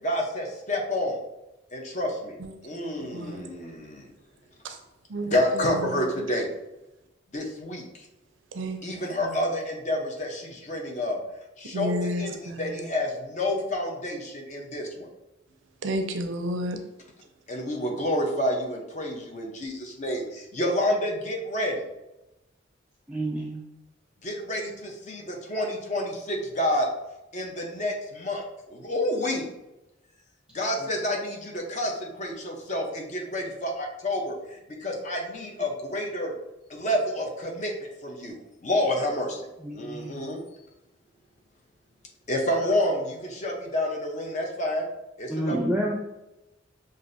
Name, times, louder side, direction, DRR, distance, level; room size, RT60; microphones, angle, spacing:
voice 1, 0.0-1.2 1.7-2.4 2.6-4.1 5.3-6.5 7.3-7.8 8.8-11.2 11.6-15.1 17.5-21.7 24.2-26.9 27.3-29.5 30.5-36.3 36.7-37.7 38.0-38.4 38.6-39.4 39.7-40.4 42.3-44.9 45.2-45.6, left 1 dB, 40° left, 1 dB, 0.7 m, -29 dB
voice 2, 2.4-3.4 4.6-4.8 5.1-6.0 8.5-8.8 9.2-9.4 11.7-12.8 15.8-16.8, equal, 75° right, 6 dB, 0.5 m, -32 dB
voice 3, 23.1-23.6 39.6-40.3 45.3-45.9, right 1 dB, 5° right, -3 dB, 0.3 m, -29 dB
5.9 x 2.5 x 2.6 m, 0.94 s
head